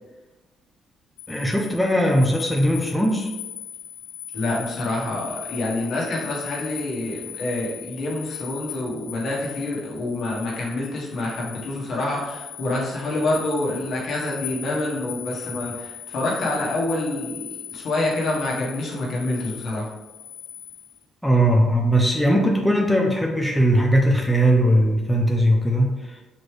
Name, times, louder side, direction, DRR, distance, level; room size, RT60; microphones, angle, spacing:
sound 1, 1.2-21.0, left 10 dB, 85° left, 0.5 m, -39 dB
voice 1, 1.3-3.3 21.2-26.2, equal, ahead, -1 dB, 0.6 m, -19 dB
voice 2, 4.3-19.9, left 2 dB, 65° left, -3 dB, 1.3 m, -27 dB
4.2 x 3.0 x 3.2 m, 1.1 s
cardioid pair, 90°, 0 cm